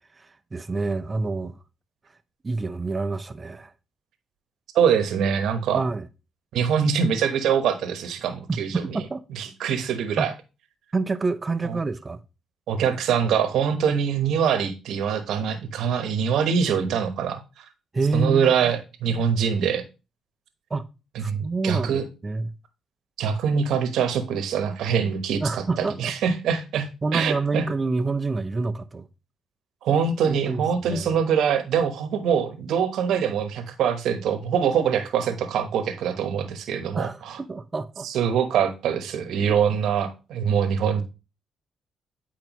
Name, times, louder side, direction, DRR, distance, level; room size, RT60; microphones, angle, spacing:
voice 1, 0.2-1.6 2.4-3.7 5.7-6.1 8.5-9.2 10.2-10.3 10.9-12.2 17.9-18.7 19.1-19.2 20.7-20.8 21.2-22.5 25.4-26.1 27.0-29.1 30.2-31.1 37.0-37.2 37.5-38.1 39.2-39.3, right 3 dB, 25° right, 0.6 m, -28 dB
voice 2, 4.7-5.8 6.5-8.8 9.3-10.3 11.6-11.8 12.7-17.6 18.1-19.8 21.1-22.0 23.2-26.9 27.1-27.7 29.8-37.4 38.0-41.0, right 7 dB, 80° right, 1.1 m, -24 dB
9.0 x 4.7 x 3.0 m
cardioid pair, 90°, 0 cm